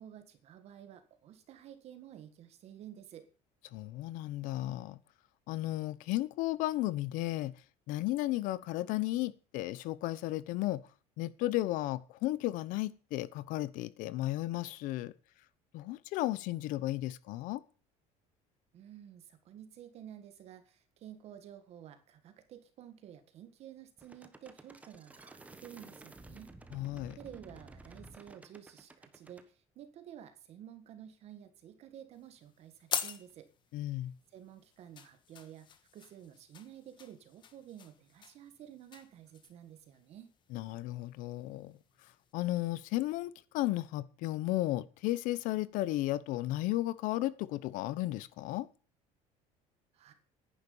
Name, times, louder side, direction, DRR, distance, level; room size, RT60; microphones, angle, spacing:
voice 1, 0.0-3.3 18.7-26.5 27.1-33.5 33.9-34.0 34.3-40.3 49.9-50.1, right 10 dB, 45° right, 1.6 m, -52 dB
voice 2, 3.7-5.0 5.5-7.5 7.9-10.8 11.2-15.1 15.7-17.6 26.7-27.2 33.7-34.1 40.5-41.8 42.3-48.7, left 16 dB, 65° left, 0.9 m, -34 dB
sound 1, 24.0-29.5, right 2 dB, 10° right, 1.2 m, -53 dB
sound 2, 32.1-42.3, left 8 dB, 35° left, 1.4 m, -46 dB
10.5 x 10.5 x 7.1 m
cardioid pair, 165°, 14 cm